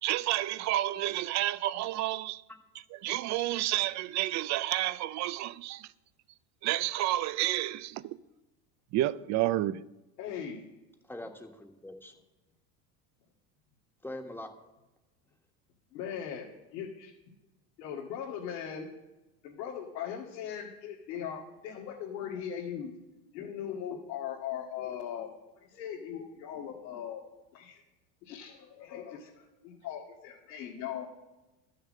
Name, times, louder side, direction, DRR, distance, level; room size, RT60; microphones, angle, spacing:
voice 1, 0.0-2.4 2.9-5.9 6.6-8.2 8.9-9.8, right 15 dB, 40° right, 0.4 m, -30 dB
voice 2, 10.2-10.6 15.9-17.1 17.8-18.9 19.4-22.9 23.3-25.3 25.6-27.2 27.5-27.8 28.2-31.0, left 8 dB, 90° left, 2.1 m, -39 dB
voice 3, 11.0-12.1 14.0-14.5, left 1 dB, 5° left, 1.4 m, -43 dB
12.5 x 6.7 x 7.4 m
supercardioid pair, 120°, 49 cm